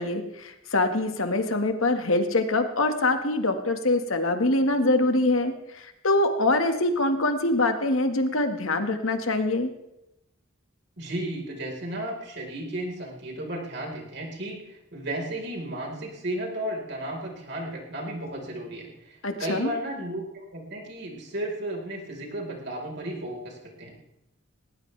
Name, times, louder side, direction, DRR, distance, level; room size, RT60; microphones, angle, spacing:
voice 1, 0.0-9.7 19.2-19.7, left 2 dB, 85° left, 6 dB, 1.8 m, -24 dB
voice 2, 11.0-24.0, right 1 dB, 55° right, 0 dB, 4.5 m, -34 dB
19.0 x 18.5 x 3.4 m, 0.89 s
head